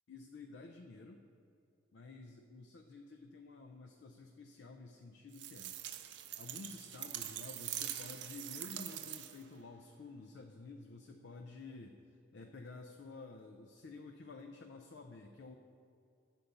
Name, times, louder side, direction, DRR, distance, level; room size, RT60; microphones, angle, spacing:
voice 1, 0.1-1.2 1.9-5.8 6.4-15.6, left 3 dB, 60° left, 4 dB, 0.4 m, -51 dB
sound 1, 5.3-9.5, right 12 dB, 60° right, 0.4 m, -44 dB
8.2 x 3.8 x 6.7 m, 2.5 s
head